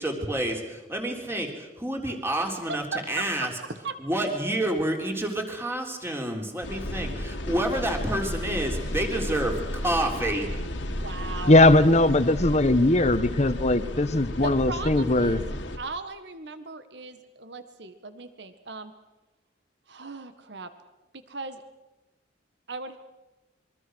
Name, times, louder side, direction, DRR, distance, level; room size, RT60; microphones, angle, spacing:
voice 1, 0.0-3.5 4.0-10.5, right 1 dB, 15° right, 2 dB, 3.8 m, -29 dB
voice 2, 2.7-3.3 3.7-4.0 10.9-11.7 14.4-15.4 15.8-18.9 19.9-20.7 21.3-21.6 22.7-23.0, right 3 dB, 65° right, 10 dB, 1.7 m, -37 dB
sound 1, 6.6-15.8, left 1 dB, 85° left, 2.4 m, -33 dB
voice 3, 11.5-15.4, left 2 dB, 40° left, 11 dB, 1.3 m, -20 dB
26.5 x 23.5 x 6.4 m, 1.1 s
head